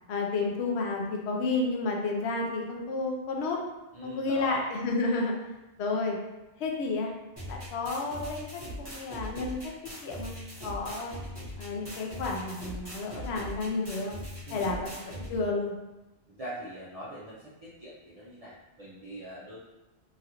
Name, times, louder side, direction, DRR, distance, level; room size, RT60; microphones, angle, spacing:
voice 1, 0.1-3.6 4.0-5.3 5.8-6.2 6.6-7.1 7.5-9.6 10.0-10.4 10.6-11.1 11.6-14.2 14.5-15.7, left 3 dB, 80° left, 0 dB, 0.9 m, -31 dB
voice 2, 3.9-4.7 14.5-14.9 16.3-19.6, right 1 dB, 45° right, -9 dB, 0.5 m, -42 dB
sound 1, 7.4-15.4, equal, 25° right, 1.0 m, -41 dB
3.0 x 2.4 x 2.8 m, 1.0 s
omnidirectional pair, 1.1 m